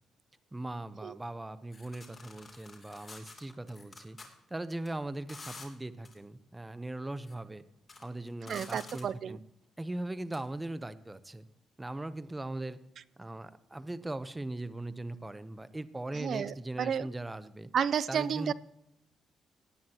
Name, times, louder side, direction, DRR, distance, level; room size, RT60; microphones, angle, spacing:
voice 1, 0.5-4.2 4.5-7.6 8.0-9.4 9.8-11.5 11.8-12.8 13.2-17.7 18.1-18.5, right 2 dB, 15° right, 13 dB, 0.8 m, -39 dB
sound 1, 1.7-4.2 4.7-4.9 5.3-5.7 6.0-6.2 7.1-7.3 7.8-9.2 10.3-10.4, left 3 dB, 30° left, 2.9 m, -49 dB
voice 2, 8.4-9.4 16.1-17.1 17.7-18.5, right 8 dB, 60° right, 19 dB, 0.5 m, -32 dB
18.5 x 9.5 x 2.9 m, 0.83 s
cardioid pair, 90°, 0 cm